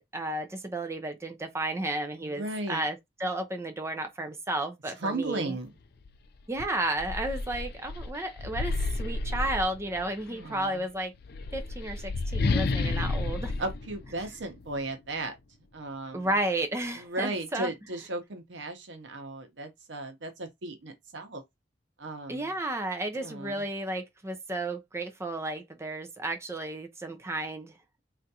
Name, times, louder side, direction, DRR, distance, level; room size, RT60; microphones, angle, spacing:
voice 1, 0.0-5.6 6.5-11.1 11.5-13.5 16.1-17.7 22.3-27.7, right 1 dB, 15° right, 0.5 m, -33 dB
voice 2, 2.2-2.8 5.0-5.7 10.3-10.8 13.6-15.4 15.7-16.3 16.9-21.4 22.0-22.6 23.1-23.6, right 2 dB, 85° right, 0.8 m, -36 dB
sound 1, 6.0-6.2 6.6-10.2 11.1-14.8, left 3 dB, 60° left, 0.4 m, -31 dB
3.5 x 2.5 x 2.7 m
head